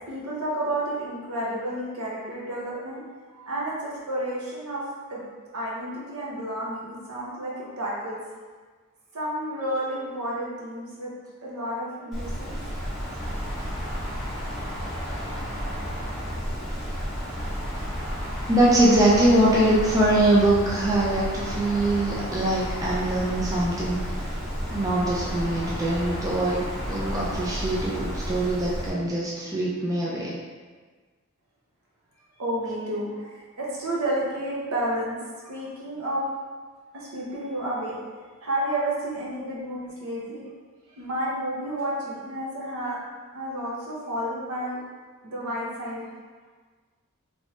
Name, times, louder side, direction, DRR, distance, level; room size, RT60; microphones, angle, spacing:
voice 1, 0.1-4.8 5.1-5.3 5.5-8.2 9.1-11.1 11.4-12.6 32.4-36.3 36.9-38.1 38.4-40.4 40.9-43.0 43.3-44.8 45.2-46.1, right 1 dB, 80° right, -5 dB, 0.9 m, -31 dB
Wind, 12.1-28.9, equal, ahead, 0.8 m, -32 dB
voice 2, 18.5-24.0 24.7-30.3, right 1 dB, 15° right, -6 dB, 0.4 m, -22 dB
3.1 x 2.8 x 3.1 m, 1.4 s
head